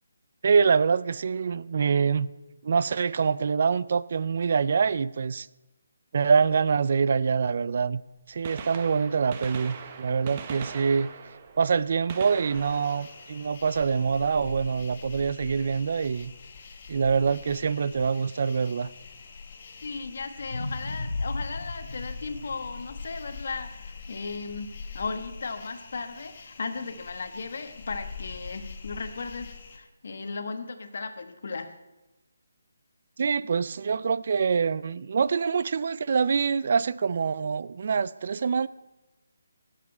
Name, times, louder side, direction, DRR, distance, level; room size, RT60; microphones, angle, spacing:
voice 1, 0.4-2.3 2.6-5.5 6.1-8.0 8.3-11.1 11.6-16.3 16.9-18.9 33.2-38.7, right 5 dB, 45° right, 0.3 m, -25 dB
Gunshot gunfire, 8.3-14.2 16.1-16.2 17.2-17.3 18.9-19.0 20.4-20.5 20.7-20.8, right 6 dB, 25° right, 0.7 m, -41 dB
sound 1, 12.5-29.8, left 5 dB, 35° left, 1.2 m, -44 dB
voice 2, 19.8-24.7 24.9-31.7, left 4 dB, 55° left, 1.2 m, -36 dB
sound 2, 20.4-24.6 25.1-25.2, left 2 dB, 85° left, 1.1 m, -36 dB
18.0 x 7.5 x 4.4 m
hypercardioid pair, 170°, 0 cm